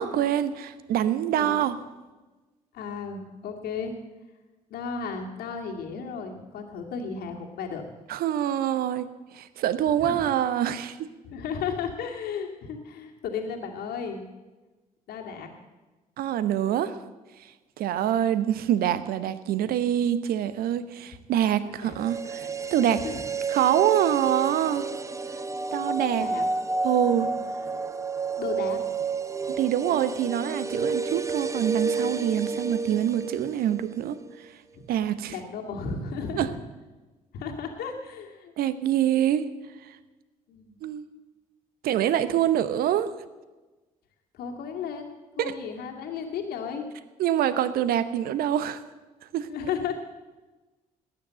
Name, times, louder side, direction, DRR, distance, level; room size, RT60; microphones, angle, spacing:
voice 1, 0.0-1.8 8.1-9.1 9.3-11.0 16.2-17.0 17.8-23.0 23.5-24.9 25.7-26.3 26.8-27.3 29.6-34.2 34.9-35.3 36.4-36.5 38.6-39.5 40.8-41.1 41.8-43.1 45.4-45.5 47.2-48.8 49.3-49.5, right 10 dB, 55° right, 14 dB, 1.0 m, -25 dB
voice 2, 2.7-3.9 4.7-7.9 10.0-10.2 11.2-14.3 15.1-15.5 21.6-22.0 22.8-23.2 26.1-26.4 27.1-27.5 28.4-28.8 34.7-34.8 35.3-36.6 37.3-38.5 40.5-40.7 44.3-46.9 49.5-49.9, left 6 dB, 55° left, 2 dB, 2.3 m, -34 dB
sound 1, 21.9-34.0 34.3-34.4, right 4 dB, 15° right, 0.8 m, -30 dB
19.0 x 9.9 x 7.7 m, 1.2 s
figure-of-eight pair, 45°, 19 cm